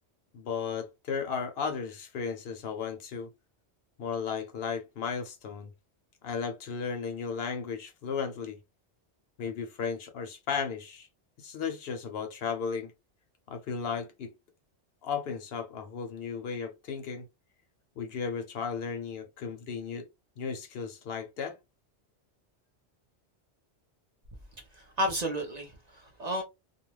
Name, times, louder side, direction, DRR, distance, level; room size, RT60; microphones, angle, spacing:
voice 1, 0.3-3.3 4.0-5.7 6.2-8.6 9.4-11.1 11.4-12.9 13.5-14.3 15.0-17.3 18.0-20.1 20.4-21.6, left 6 dB, 65° left, 0.7 m, -35 dB
voice 2, 24.7-26.4, equal, 45° right, 0.6 m, -32 dB
2.4 x 2.1 x 3.1 m
omnidirectional pair, 1.2 m